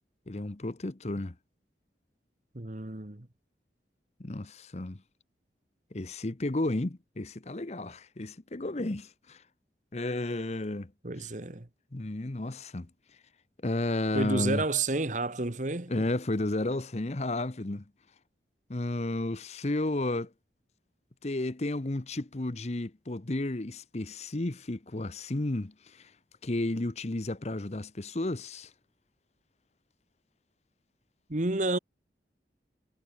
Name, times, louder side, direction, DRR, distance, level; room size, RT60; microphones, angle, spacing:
voice 1, 0.3-1.3 4.2-5.0 5.9-9.4 9.9-10.9 11.2-11.3 11.9-12.9 13.6-14.6 15.9-17.8 18.7-20.3 21.2-26.1 26.4-28.7, left 2 dB, 40° left, 0.9 m, -32 dB
voice 2, 2.5-3.3 11.0-11.7 14.1-16.0 31.3-31.8, right 2 dB, 45° right, 1.5 m, -30 dB
head